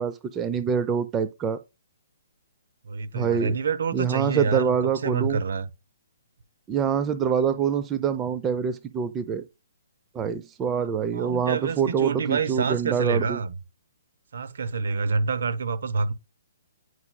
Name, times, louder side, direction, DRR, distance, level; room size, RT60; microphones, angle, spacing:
voice 1, 0.0-1.6 3.1-3.5 3.9-5.4 6.7-9.4 10.1-13.4, right 7 dB, 20° right, 0.5 m, -25 dB
voice 2, 2.8-4.7 5.0-5.7 11.1-13.6 14.3-16.1, right 5 dB, 65° right, 0.8 m, -27 dB
9.5 x 4.6 x 2.3 m
figure-of-eight pair, 130°, 0 cm